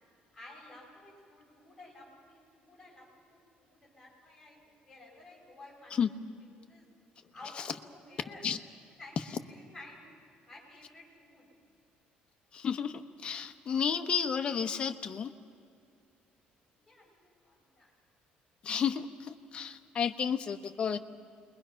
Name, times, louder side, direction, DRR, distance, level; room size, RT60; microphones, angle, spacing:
voice 1, 0.3-6.9 7.3-8.5 8.9-10.0 10.4-11.5 16.7-17.9, left 2 dB, 5° left, -4 dB, 7.1 m, -53 dB
voice 2, 12.5-15.3 18.6-21.0, left 7 dB, 30° left, 6 dB, 1.0 m, -32 dB
28.5 x 21.5 x 5.7 m, 2.5 s
cardioid pair, 155°, 3 cm